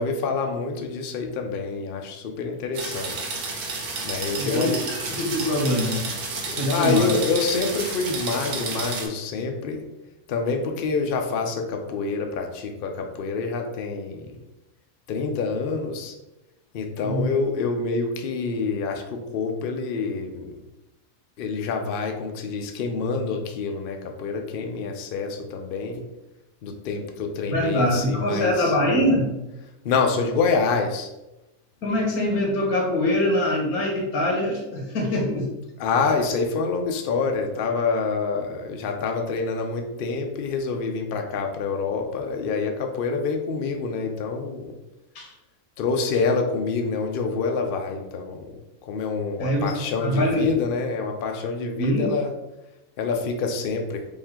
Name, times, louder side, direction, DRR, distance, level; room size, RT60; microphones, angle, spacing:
voice 1, 0.0-3.3 4.0-4.8 6.5-9.8 10.3-14.4 15.1-16.1 16.7-20.6 21.4-26.0 26.6-28.7 29.8-31.1 35.8-44.7 45.8-52.3 53.0-54.1, left 4 dB, 60° left, 3 dB, 0.6 m, -27 dB
sound 1, 2.7-9.1, right 3 dB, 90° right, 1.4 m, -31 dB
voice 2, 4.4-6.1 6.6-7.1 17.0-17.2 27.5-29.3 31.8-35.5 45.1-45.3 49.4-49.7 50.0-50.5 51.8-52.1, left 1 dB, 80° left, 0 dB, 1.6 m, -23 dB
5.2 x 2.6 x 3.6 m, 0.95 s
omnidirectional pair, 1.5 m